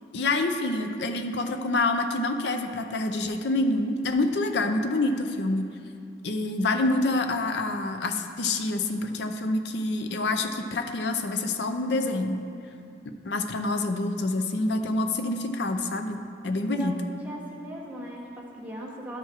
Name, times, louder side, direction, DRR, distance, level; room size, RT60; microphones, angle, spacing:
voice 1, 0.1-5.7 6.2-12.4 13.2-17.0, left 2 dB, 60° left, 7 dB, 0.5 m, -27 dB
voice 2, 16.6-19.2, equal, 10° right, -4 dB, 1.0 m, -39 dB
11.5 x 4.7 x 4.4 m, 2.4 s
head